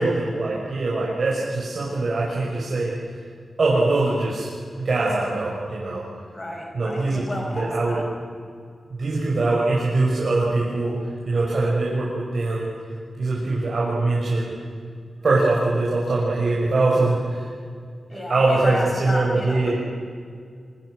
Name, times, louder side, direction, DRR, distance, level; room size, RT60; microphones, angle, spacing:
voice 1, 0.0-2.9 3.6-4.5 4.8-6.0 6.7-8.0 9.0-10.9 11.3-12.7 13.1-14.5 15.2-17.4 18.1-19.7, right 2 dB, 55° right, -6 dB, 5.9 m, -22 dB
voice 2, 6.3-8.0 18.1-19.7, left 1 dB, 25° left, 0 dB, 5.1 m, -31 dB
25.5 x 25.0 x 6.4 m, 2.2 s
wide cardioid pair, 120°, 0 cm